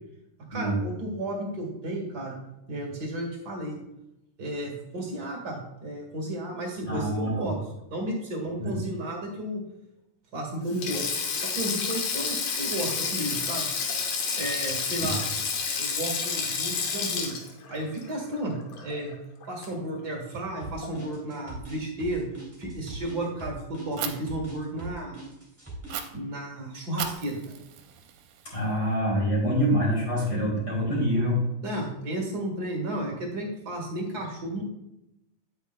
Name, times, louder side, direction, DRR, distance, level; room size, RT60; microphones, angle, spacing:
voice 1, 0.5-2.4 2.7-3.8 4.4-7.6 7.9-9.6 10.3-11.1 11.4-13.7 14.4-15.2 15.7-17.3 17.7-18.5 18.8-19.1 19.5-22.2 22.6-25.2 26.1-27.4 31.6-34.6, right 1 dB, 45° right, -1 dB, 1.3 m, -33 dB
voice 2, 6.8-7.5 8.6-8.8 15.0-15.1 28.4-31.4, equal, 30° left, -5 dB, 2.8 m, -26 dB
Sink (filling or washing), 10.7-19.1 19.4-19.7 20.8-21.1, left 5 dB, 75° left, 1.4 m, -30 dB
sound 1, 20.6-26.0, right 2 dB, 5° right, 1.6 m, -41 dB
Fire, 24.0-24.1 25.9-26.0 27.0-28.9, right 9 dB, 75° right, 2.0 m, -37 dB
9.4 x 8.3 x 2.2 m, 0.87 s
omnidirectional pair, 4.0 m